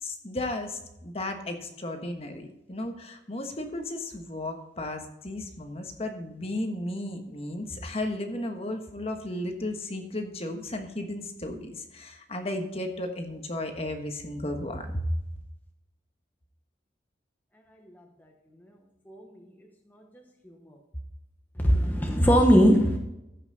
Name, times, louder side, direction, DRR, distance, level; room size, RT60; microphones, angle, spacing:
voice 1, 0.0-15.1, left 1 dB, 35° left, 5 dB, 1.3 m, -34 dB
voice 2, 19.1-19.4 19.9-20.0 20.4-20.7 21.6-23.0, equal, 10° left, 1 dB, 1.0 m, -21 dB
15.0 x 5.9 x 4.0 m, 0.89 s
head